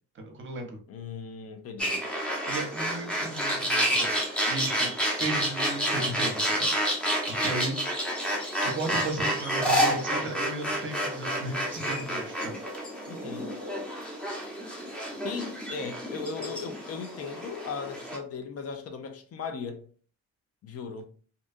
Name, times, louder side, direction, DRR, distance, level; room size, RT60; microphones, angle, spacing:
voice 1, 0.1-0.8 2.5-4.2 4.5-7.7 8.6-12.6, right 2 dB, 40° right, 0.8 m, -35 dB
voice 2, 0.9-2.0 13.1-13.6 15.2-19.8 20.6-21.0, left 5 dB, 50° left, 0.5 m, -37 dB
sound 1, 1.8-18.2, equal, 5° left, 0.8 m, -29 dB
2.6 x 2.2 x 2.5 m
cardioid pair, 90°, 30 cm